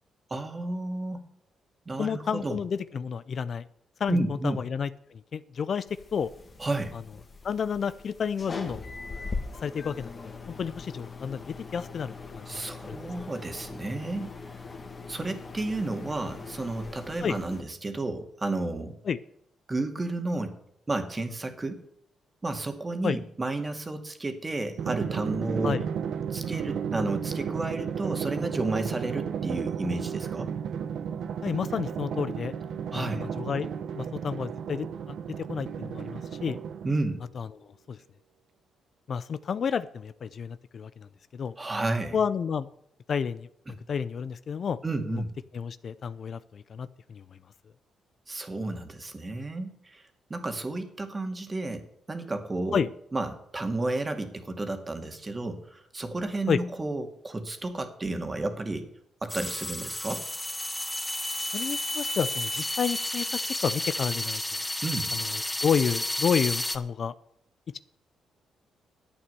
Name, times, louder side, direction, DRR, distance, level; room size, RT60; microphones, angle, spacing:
voice 1, 0.3-1.2 1.9-2.6 4.1-4.6 6.6-6.9 12.5-14.3 15.1-18.9 19.7-20.5 20.9-21.8 22.4-25.8 26.3-30.5 32.9-33.3 36.8-37.2 41.6-42.2 43.7-43.8 44.8-45.3 48.3-50.0 50.3-52.9 53.1-58.9 59.2-60.3 64.8-65.1, right 2 dB, 25° right, 6 dB, 2.1 m, -32 dB
voice 2, 2.0-3.6 4.0-5.9 6.1-6.3 7.4-8.9 9.6-10.3 10.6-13.0 17.2-17.4 19.1-19.2 23.0-23.2 25.6-25.8 31.4-32.5 32.9-33.7 34.0-36.6 37.4-37.5 37.9-38.0 39.1-41.5 42.1-42.7 43.1-44.8 45.1-45.2 45.5-47.2 52.7-52.9 56.5-56.6 61.5-64.4 65.6-67.1, left 6 dB, 55° left, 15 dB, 0.5 m, -30 dB
sound 1, 5.9-17.6, left 4 dB, 35° left, 2.0 m, -41 dB
Drum, 24.8-37.1, right 7 dB, 70° right, 0.9 m, -33 dB
sound 2, 59.3-66.8, left 1 dB, 10° left, 1.1 m, -31 dB
11.0 x 8.6 x 6.9 m, 0.72 s
cardioid pair, 95°, 0 cm